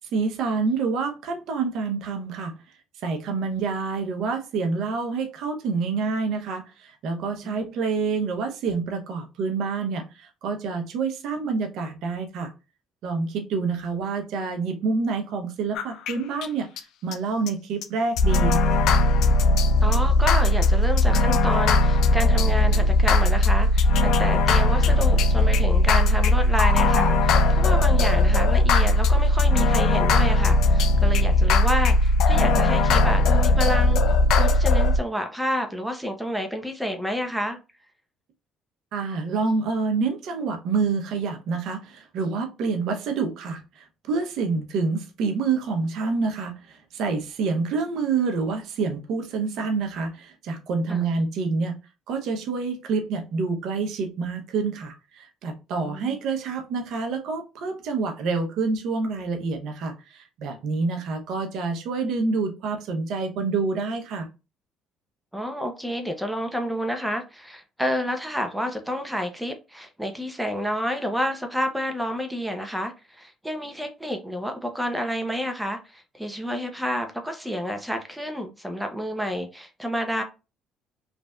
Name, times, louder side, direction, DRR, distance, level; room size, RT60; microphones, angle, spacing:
voice 1, 0.1-2.5 3.0-12.5 13.0-16.7 17.0-18.6 38.9-51.8 52.1-64.3, right 4 dB, 70° right, 0.7 m, -27 dB
sound 1, 15.7-16.1 16.4-16.5 16.8-16.9 17.1-17.2 17.5-17.6 17.8-17.9 18.2-35.0, left 2 dB, 75° left, 0.4 m, -19 dB
voice 2, 19.8-34.0 34.4-37.6 50.9-51.1 55.8-56.2 65.3-80.2, equal, 5° right, 0.6 m, -29 dB
3.3 x 2.5 x 2.2 m
supercardioid pair, 75°, 0 cm